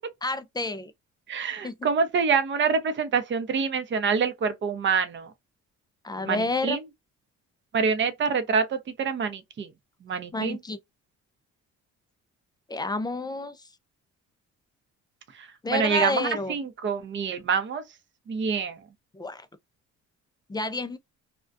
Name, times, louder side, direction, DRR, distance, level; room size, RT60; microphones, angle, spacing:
voice 1, 0.2-0.9 1.6-1.8 6.0-6.8 10.3-10.8 12.7-13.6 15.6-16.6 19.1-19.5 20.5-21.0, left 2 dB, 15° left, 0.3 m, -29 dB
voice 2, 1.3-5.3 6.3-6.8 7.7-9.7 10.0-10.6 15.4-17.8 18.3-18.8, right 5 dB, 40° right, 0.6 m, -26 dB
2.3 x 2.1 x 2.4 m
cardioid pair, 90°, 30 cm